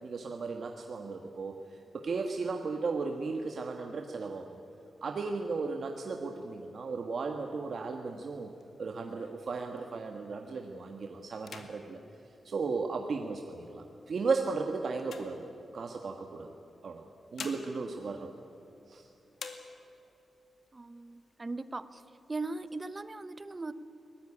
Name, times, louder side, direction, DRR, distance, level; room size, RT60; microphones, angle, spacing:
voice 1, 0.0-4.6 5.0-8.5 8.8-12.0 12.4-15.5 15.7-16.5 16.8-18.3 18.9-19.1, right 4 dB, 50° right, 3 dB, 1.4 m, -35 dB
sound 1, 8.1-10.3 10.8-11.0 11.3-13.3 13.9-16.1 17.0-19.0 19.3-20.2 20.6-20.7 21.0-21.7 22.1-23.0, left 5 dB, 65° left, 2.1 m, -50 dB
voice 2, 20.7-22.0 22.3-23.7, right 3 dB, 20° right, 13 dB, 0.8 m, -39 dB
22.5 x 19.5 x 9.8 m, 2.8 s
wide cardioid pair, 170°, 0 cm